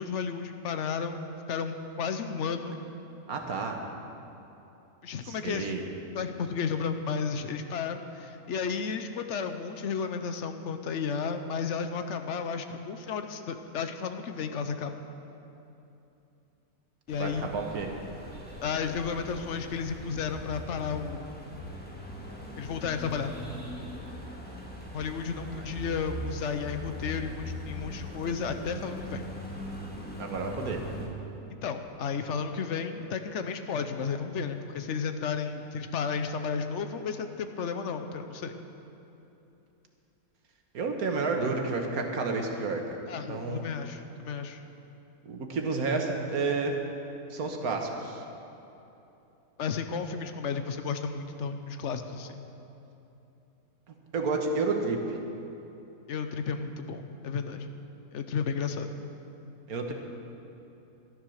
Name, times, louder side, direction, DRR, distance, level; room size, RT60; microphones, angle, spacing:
voice 1, 0.0-2.8 5.0-5.7 6.1-14.9 17.1-17.5 18.6-21.3 22.6-23.3 24.9-29.2 31.6-38.6 43.1-44.6 49.6-52.4 56.1-57.7 58.1-58.9, left 6 dB, 60° left, 8 dB, 1.0 m, -33 dB
voice 2, 3.3-3.8 5.2-5.8 17.2-17.9 25.5-25.6 30.2-30.8 40.7-42.8 43.3-43.6 45.2-46.8 47.3-48.2 54.1-55.2 59.7-59.9, right 3 dB, 75° right, 3 dB, 1.7 m, -30 dB
sound 1, 17.1-31.1, equal, 5° left, 1.5 m, -41 dB
12.5 x 10.5 x 6.4 m, 2.9 s
omnidirectional pair, 1.6 m